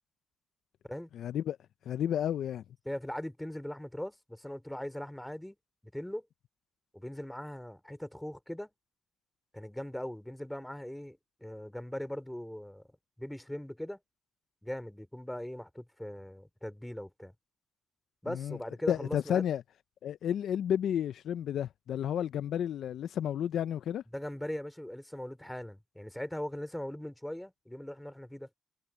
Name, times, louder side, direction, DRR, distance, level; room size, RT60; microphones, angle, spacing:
voice 1, 1.1-1.6 1.9-2.6 18.3-18.6 18.9-19.6 20.0-24.0, left 9 dB, 70° left, 0.5 m, -31 dB
voice 2, 2.8-5.6 5.9-6.2 6.9-8.7 9.5-12.8 13.2-14.0 14.6-17.3 18.2-19.4 24.1-28.5, left 1 dB, 5° left, 2.8 m, -40 dB
cardioid pair, 90°, 0 cm